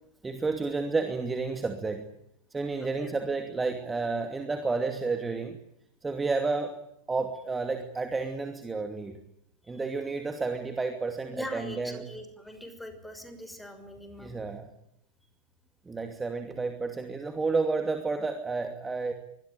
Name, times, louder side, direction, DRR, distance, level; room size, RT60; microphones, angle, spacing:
voice 1, 0.2-2.1 2.5-5.6 6.0-6.8 7.1-9.2 9.7-12.0 14.2-14.7 15.9-19.1, right 4 dB, 10° right, 7 dB, 2.6 m, -31 dB
voice 2, 11.3-14.4, left 1 dB, 5° left, 8 dB, 6.2 m, -41 dB
25.5 x 21.5 x 9.3 m, 0.78 s
figure-of-eight pair, 90°, 0 cm